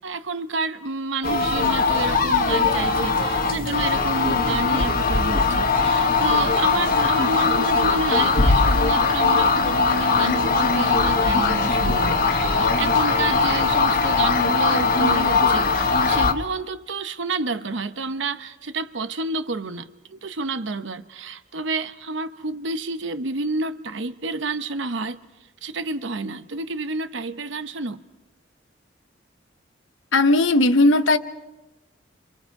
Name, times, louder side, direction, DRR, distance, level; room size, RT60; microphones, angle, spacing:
voice 1, 0.0-25.2 25.6-28.0, right 3 dB, 70° right, 1.0 m, -29 dB
sound 1, 1.2-16.3, left 4 dB, 45° left, 1.3 m, -20 dB
voice 2, 30.1-31.2, left 2 dB, 75° left, 1.0 m, -17 dB
29.5 x 26.0 x 4.8 m
head